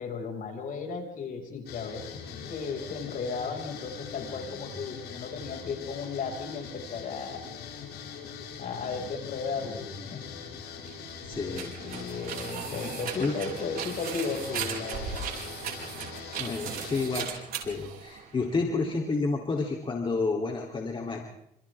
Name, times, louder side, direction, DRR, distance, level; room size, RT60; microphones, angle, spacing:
voice 1, 0.0-2.1 2.4-7.4 8.6-10.2 11.4-15.2, left 5 dB, 55° left, 2 dB, 6.3 m, -35 dB
sound 1, 1.7-17.2, left 6 dB, 80° left, 8.0 m, -42 dB
sound 2, 10.8-18.7, right 8 dB, 60° right, 5.0 m, -38 dB
voice 2, 11.2-11.7 12.8-12.9 13.2-13.4 16.4-17.3 17.6-21.3, left 4 dB, 30° left, 1 dB, 3.4 m, -30 dB
27.5 x 27.0 x 3.7 m, 0.73 s
cardioid pair, 110°, 17 cm